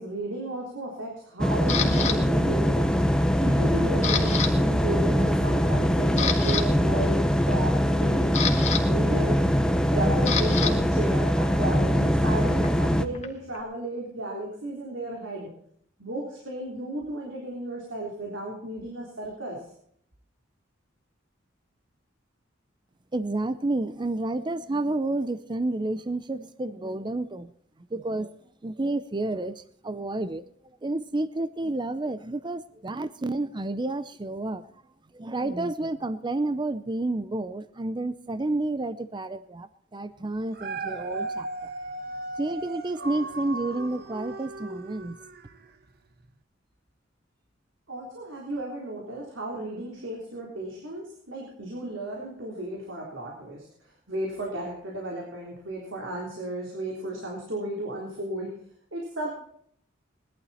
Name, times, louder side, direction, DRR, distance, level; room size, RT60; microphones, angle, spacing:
voice 1, 0.0-3.0 3.4-8.4 8.8-9.5 9.8-15.5 16.0-19.6 47.9-58.5 58.9-59.4, right 1 dB, 80° right, -2 dB, 3.7 m, -34 dB
sound 1, 1.4-13.0, equal, 5° left, 0.8 m, -23 dB
Camera, 1.7-2.2 2.8-3.1 3.4-4.5 4.8-5.0 5.5-5.6 6.0-6.6 7.8-10.7 11.0-13.6, left 7 dB, 35° left, 1.8 m, -30 dB
voice 2, 23.1-27.5 27.9-28.3 28.6-30.4 30.8-34.6 35.1-41.7 42.4-45.2, right 2 dB, 25° right, 14 dB, 0.6 m, -30 dB
Dog, 40.4-45.7 46.2-46.3, right 2 dB, 55° right, 1.3 m, -36 dB
19.5 x 12.0 x 4.3 m, 0.67 s
head